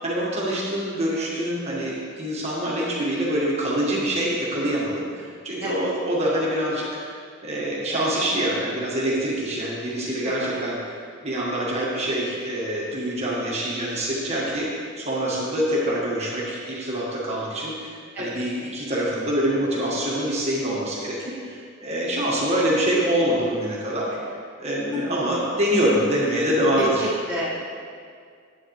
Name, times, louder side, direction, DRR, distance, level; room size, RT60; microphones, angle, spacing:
voice 1, 0.0-24.2 24.6-27.1, right 1 dB, 30° right, -5 dB, 1.6 m, -25 dB
voice 2, 10.2-10.6 18.1-18.4 24.9-25.2 26.8-27.7, equal, 10° right, -10 dB, 1.4 m, -30 dB
9.7 x 8.6 x 3.2 m, 2.2 s
head